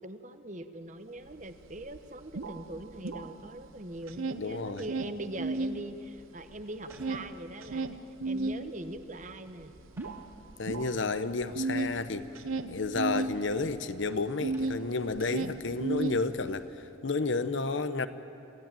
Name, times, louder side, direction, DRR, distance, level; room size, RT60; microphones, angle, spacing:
voice 1, 0.0-9.7, right 1 dB, 35° right, 10 dB, 1.0 m, -42 dB
sound 1, 1.3-1.4 1.7-3.7 3.9-5.8 6.2-14.8 15.1-16.6, right 3 dB, 85° right, 0.9 m, -34 dB
voice 2, 4.4-4.8 10.6-12.3 12.7-18.1, left 3 dB, 65° left, 12 dB, 0.9 m, -31 dB
sound 2, 6.9-8.1 10.0-11.0 14.5-15.5, right 1 dB, 10° right, 2.5 m, -57 dB
27.0 x 15.5 x 9.1 m, 2.9 s
head